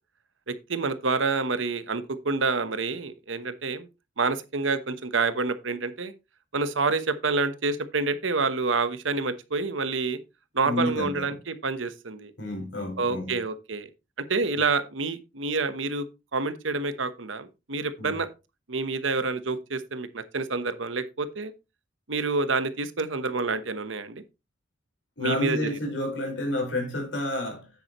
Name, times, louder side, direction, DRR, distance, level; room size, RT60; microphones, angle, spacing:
voice 1, 0.5-3.9 4.2-6.1 6.5-10.2 10.5-12.3 13.0-13.9 14.3-16.0 16.3-18.3 18.7-21.5 22.1-24.2 25.2-25.7, right 4 dB, 85° right, 1.1 m, -28 dB
voice 2, 10.6-11.4 12.4-13.4 18.0-18.2 25.2-27.7, left 1 dB, 70° left, 4.8 m, -30 dB
9.5 x 8.9 x 3.0 m
head